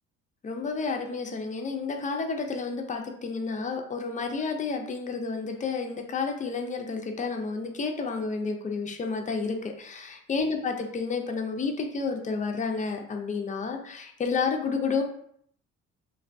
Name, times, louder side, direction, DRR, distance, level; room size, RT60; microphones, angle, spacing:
voice 1, 0.4-15.0, left 4 dB, 25° left, 3 dB, 0.4 m, -30 dB
2.6 x 2.0 x 2.5 m, 0.66 s
cardioid pair, 90°, 30 cm